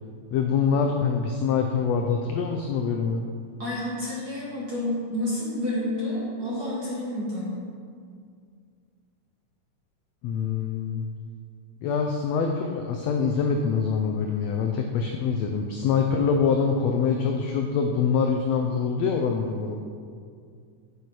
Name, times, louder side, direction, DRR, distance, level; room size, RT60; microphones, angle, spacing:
voice 1, 0.3-3.2 10.2-11.1 11.8-19.8, left 6 dB, 85° left, 3 dB, 1.5 m, -25 dB
voice 2, 3.6-7.6, left 1 dB, 40° right, -7 dB, 1.5 m, -29 dB
9.2 x 6.8 x 4.7 m, 2.2 s
omnidirectional pair, 3.6 m